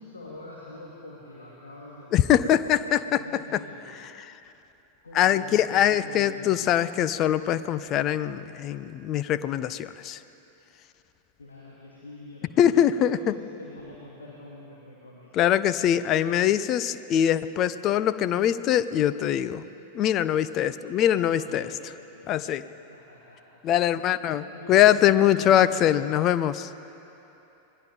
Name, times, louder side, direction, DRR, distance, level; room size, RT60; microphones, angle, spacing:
voice 1, 0.0-3.8 5.0-6.8 11.4-15.3 21.0-22.4 22.9-23.4 24.1-25.9, left 2 dB, 75° left, -5 dB, 3.2 m, -45 dB
voice 2, 2.1-3.6 4.2-4.3 5.1-10.2 12.6-13.3 15.3-19.6 19.9-21.7 22.3-22.6 23.6-26.7, left 10 dB, 35° left, 14 dB, 0.7 m, -23 dB
27.5 x 21.5 x 5.3 m, 3.0 s
figure-of-eight pair, 90°, 0 cm